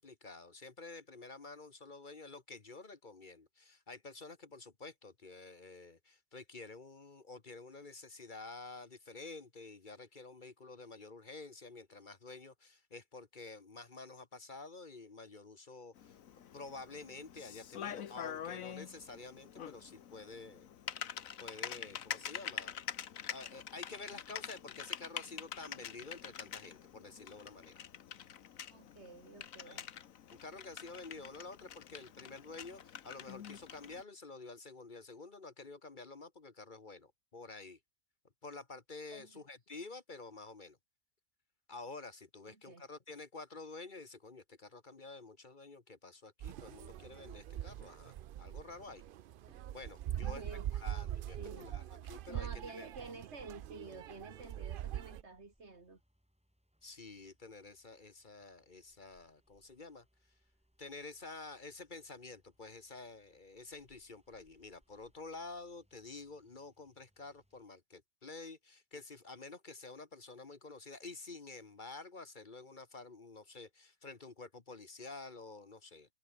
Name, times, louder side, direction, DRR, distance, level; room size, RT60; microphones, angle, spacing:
voice 1, 0.0-16.2 16.5-20.7 21.4-22.8 23.3-27.8 29.7-29.8 30.3-37.8 38.4-40.8 41.7-49.0 49.7-50.4 50.7-52.5 52.8-52.9 56.8-60.0 60.8-76.1, left 3 dB, 35° left, 1.4 m, -50 dB
Typing, 16.0-34.0, left 9 dB, 75° left, 1.4 m, -46 dB
voice 2, 28.7-29.9 39.1-39.4 42.5-42.8 50.1-50.7 51.4-51.7 52.3-56.0, right 3 dB, 50° right, 2.8 m, -50 dB
sound 1, 46.4-55.2, right 12 dB, 90° right, 0.4 m, -43 dB
sound 2, 51.2-67.6, equal, 5° right, 5.9 m, -73 dB
omnidirectional pair, 1.5 m